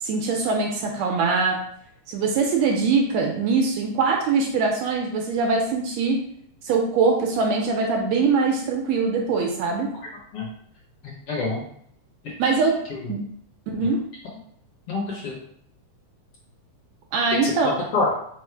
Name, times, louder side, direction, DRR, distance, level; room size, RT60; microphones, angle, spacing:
voice 1, 0.0-1.6 2.1-6.2 6.6-9.9 12.4-12.8 13.1-13.2 13.7-14.1 17.1-17.8, right 4 dB, 75° right, 1 dB, 1.7 m, -22 dB
voice 2, 11.0-11.6 12.9-13.1 13.8-13.9 14.9-15.4 17.4-18.1, left 3 dB, 60° left, -4 dB, 1.7 m, -27 dB
4.8 x 2.1 x 4.4 m, 0.67 s
omnidirectional pair, 3.3 m